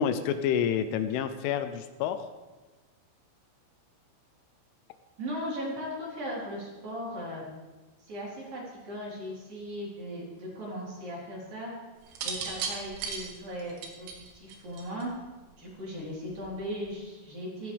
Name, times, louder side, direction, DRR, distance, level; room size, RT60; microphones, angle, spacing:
voice 1, 0.0-2.3, left 8 dB, 80° left, 9 dB, 3.1 m, -28 dB
voice 2, 5.2-7.4 8.0-11.7 12.2-15.1 15.6-17.7, equal, 45° right, -5 dB, 5.4 m, -38 dB
sound 1, 12.1-15.2 16.3-16.7, right 5 dB, 90° right, 4.3 m, -36 dB
17.0 x 15.0 x 3.5 m, 1.2 s
omnidirectional pair, 5.7 m